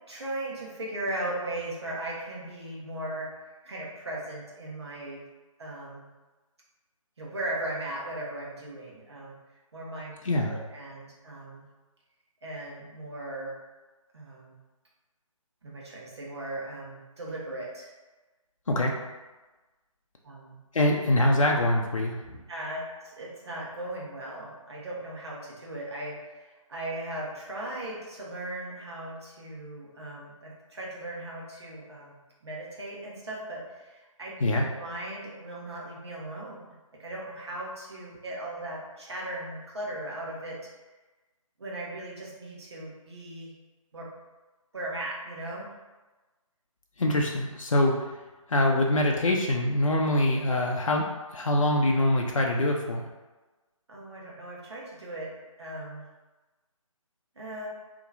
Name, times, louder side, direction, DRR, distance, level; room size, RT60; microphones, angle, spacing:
voice 1, 0.1-3.3 3.6-5.2 5.6-6.1 7.2-9.4 9.7-10.1 10.5-11.6 12.4-13.6 14.1-14.5 15.6-17.9 20.2-20.6 22.5-34.3 34.7-36.6 37.0-40.6 41.6-43.5 43.9-44.1 44.7-45.7 53.9-55.3 55.6-56.0 57.4-57.7, right 1 dB, 50° right, -4 dB, 1.2 m, -37 dB
voice 2, 18.7-19.0 20.7-22.4 34.4-34.7 47.0-48.0 48.5-51.0 51.3-53.0, left 1 dB, 65° left, 0 dB, 0.5 m, -24 dB
4.0 x 2.9 x 2.6 m, 1.2 s
figure-of-eight pair, 150°, 18 cm